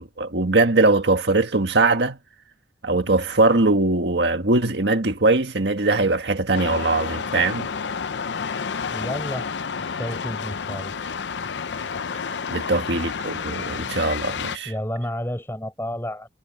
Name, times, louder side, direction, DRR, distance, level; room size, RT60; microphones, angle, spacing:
voice 1, 0.0-2.2 2.8-7.7 12.2-14.7, right 2 dB, 75° right, 1.7 m, -21 dB
sound 1, 6.5-14.6, left 6 dB, 85° left, 0.6 m, -30 dB
voice 2, 8.9-9.5 10.0-11.0 14.7-16.3, equal, 15° left, 5.8 m, -30 dB
head